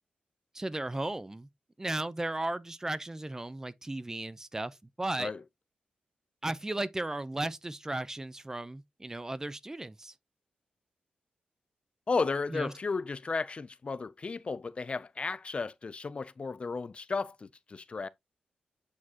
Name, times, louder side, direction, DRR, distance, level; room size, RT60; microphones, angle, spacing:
voice 1, 0.5-1.5 1.8-5.3 6.4-10.1 12.5-12.7, right 2 dB, 15° right, 0.6 m, -35 dB
voice 2, 12.1-18.1, left 4 dB, 40° left, 0.4 m, -34 dB
8.3 x 4.8 x 2.8 m
cardioid pair, 85°, 3 cm